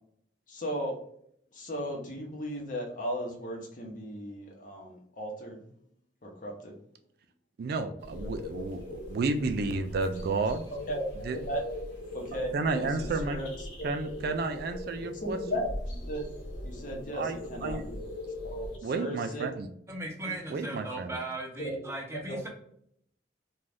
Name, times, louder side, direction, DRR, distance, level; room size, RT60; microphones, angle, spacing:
voice 1, 0.5-1.0 1.5-5.7 6.2-6.8 10.9-11.1 11.3-11.6 12.1-13.5 13.8-13.9 15.0-16.2 16.6-18.0 18.5-19.5 20.2-20.3 21.6-21.9 22.1-22.5, equal, 45° left, 0 dB, 0.8 m, -36 dB
voice 2, 7.6-10.7 11.2-11.4 12.5-13.4 13.8-15.4 17.1-17.8 18.8-19.7 20.5-21.2, right 3 dB, 55° right, 7 dB, 0.3 m, -31 dB
sound 1, 8.0-18.8, left 1 dB, 80° left, 0.9 m, -41 dB
voice 3, 19.9-22.5, right 2 dB, 15° right, 0 dB, 0.6 m, -37 dB
2.6 x 2.3 x 3.3 m, 0.69 s
head